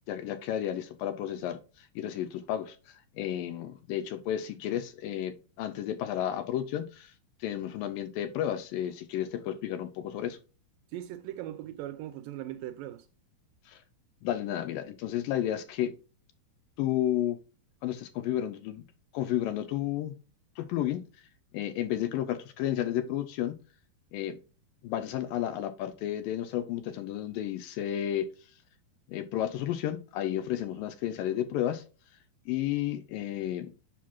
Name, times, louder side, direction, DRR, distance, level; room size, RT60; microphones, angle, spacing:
voice 1, 0.1-7.1 7.4-10.4 13.7-13.8 14.2-16.0 16.8-17.4 17.8-18.8 19.1-20.1 20.6-21.0 21.5-23.6 24.1-24.4 24.8-28.3 29.1-31.8 32.5-33.7, left 11 dB, 80° left, 2.2 m, -32 dB
voice 2, 10.9-13.1, right 13 dB, 80° right, 2.1 m, -39 dB
7.5 x 5.8 x 2.3 m
omnidirectional pair, 4.3 m